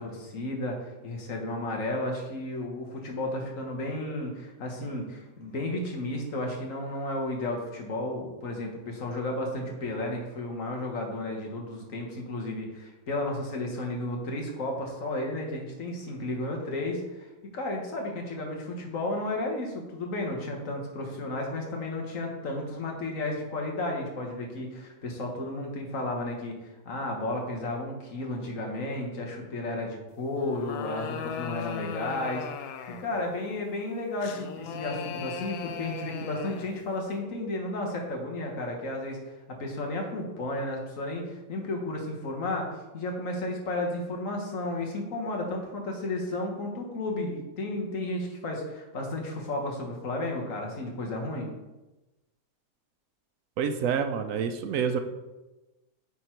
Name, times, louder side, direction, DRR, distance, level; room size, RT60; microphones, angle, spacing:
voice 1, 0.0-51.5, left 2 dB, 65° left, 1 dB, 1.6 m, -33 dB
sound 1, 30.4-33.2 34.2-36.8, left 7 dB, 85° left, 1.1 m, -37 dB
voice 2, 53.6-55.0, right 7 dB, 70° right, 8 dB, 0.9 m, -27 dB
8.7 x 3.8 x 4.5 m, 1.1 s
omnidirectional pair, 1.5 m